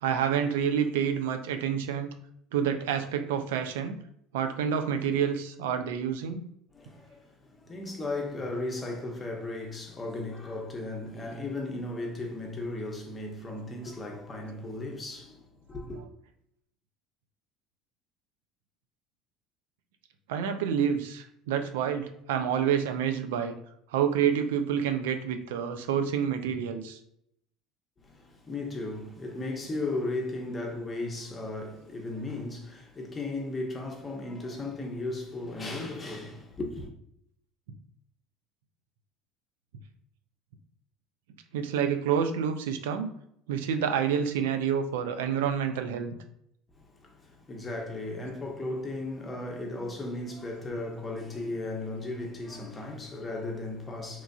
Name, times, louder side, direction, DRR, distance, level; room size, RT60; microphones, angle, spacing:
voice 1, 0.0-2.1 2.5-4.0 4.3-6.4 15.9-16.1 20.3-23.6 23.9-27.0 41.5-43.1 43.5-46.2, right 8 dB, 90° right, 0.3 m, -28 dB
voice 2, 6.7-16.0 28.0-36.9 46.9-54.2, left 2 dB, 25° left, 0.7 m, -36 dB
3.0 x 2.5 x 2.3 m
supercardioid pair, 100°, 0 cm